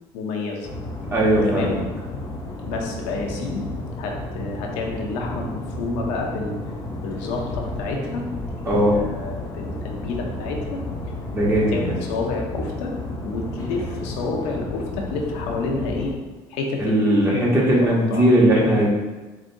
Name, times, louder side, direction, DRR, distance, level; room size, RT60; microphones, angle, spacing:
voice 1, 0.1-0.7 1.5-1.8 2.7-3.7 4.0-6.6 7.0-8.2 8.7-10.8 11.5-12.9 13.2-16.1 16.5-18.2, left 3 dB, 85° left, 0 dB, 0.7 m, -29 dB
sound 1, 0.6-16.1, left 2 dB, 30° left, 0.7 m, -32 dB
voice 2, 1.1-1.8 8.7-8.9 11.3-11.8 16.8-18.9, right 1 dB, 25° right, -4 dB, 1.1 m, -18 dB
4.9 x 2.6 x 2.6 m, 1.2 s
cardioid pair, 120°, 11 cm